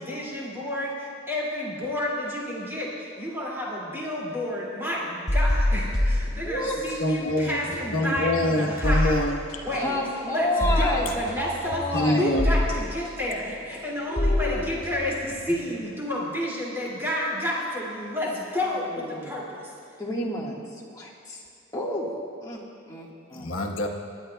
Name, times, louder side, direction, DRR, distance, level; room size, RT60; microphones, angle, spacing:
voice 1, 0.0-9.2 9.6-19.7, left 1 dB, 10° right, -6 dB, 2.3 m, -30 dB
sound 1, 5.3-7.0 7.3-15.9, left 1 dB, 40° left, 3.3 m, -27 dB
voice 2, 6.3-6.8 9.7-11.1 11.4-12.3 14.1-14.7 18.5-19.3 20.0-21.4 21.7-22.1 22.4-22.6 22.9-23.5, left 1 dB, 15° left, -4 dB, 1.5 m, -31 dB
voice 3, 7.0-7.7 7.9-9.6 11.9-12.5 23.3-23.9, left 1 dB, 75° left, 2 dB, 1.1 m, -25 dB
27.0 x 10.0 x 2.2 m, 2.4 s
head